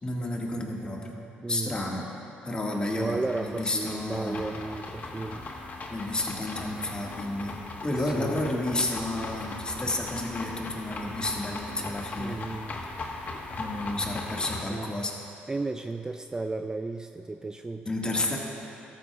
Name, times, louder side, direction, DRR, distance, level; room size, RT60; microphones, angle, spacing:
voice 1, 0.0-2.1 2.4-4.4 5.9-7.5 7.8-12.4 12.8-13.2 13.6-15.2 17.8-18.4, left 1 dB, 25° left, -1 dB, 1.8 m, -31 dB
voice 2, 1.4-1.8 2.9-5.5 8.0-8.4 12.2-12.8 14.5-15.0 15.5-17.9, right 3 dB, 15° right, 7 dB, 0.4 m, -34 dB
sound 1, 2.7-14.6, left 3 dB, 45° left, 1.3 m, -39 dB
14.5 x 13.0 x 2.4 m, 3.0 s
supercardioid pair, 75°, 4 cm